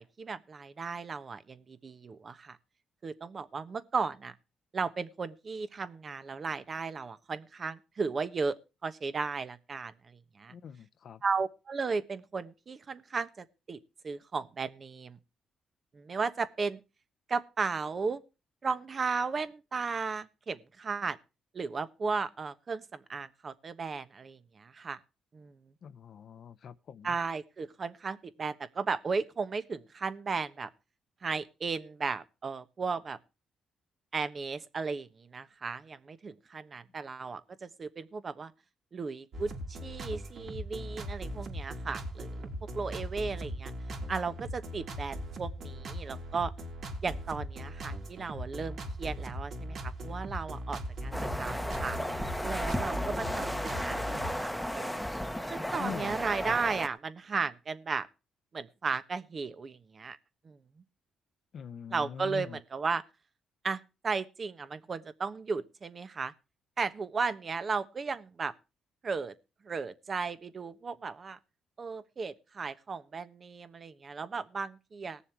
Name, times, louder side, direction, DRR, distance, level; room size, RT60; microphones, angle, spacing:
voice 1, 0.0-2.6 3.0-4.3 4.7-8.6 8.8-10.5 11.2-13.8 14.0-15.2 15.9-16.8 17.3-18.2 18.6-21.2 21.5-25.0 25.3-25.6 27.0-30.7 31.2-33.2 34.1-38.5 38.9-42.5 42.7-43.7 44.1-46.5 47.0-52.0 52.4-54.0 54.3-55.0 55.5-58.1 58.5-60.2 60.4-60.6 61.9-63.0 63.6-66.3 66.8-68.5 69.0-69.3 69.6-71.4 71.8-75.2, right 4 dB, 40° right, 1.1 m, -35 dB
voice 2, 10.5-11.2 25.8-27.2 53.3-53.4 55.8-56.6 61.5-62.6, left 7 dB, 60° left, 0.8 m, -43 dB
sound 1, 39.3-54.3, equal, 60° right, 3.4 m, -39 dB
sound 2, 51.1-56.9, equal, ahead, 1.2 m, -34 dB
18.5 x 7.1 x 4.6 m
cardioid pair, 90°, 0 cm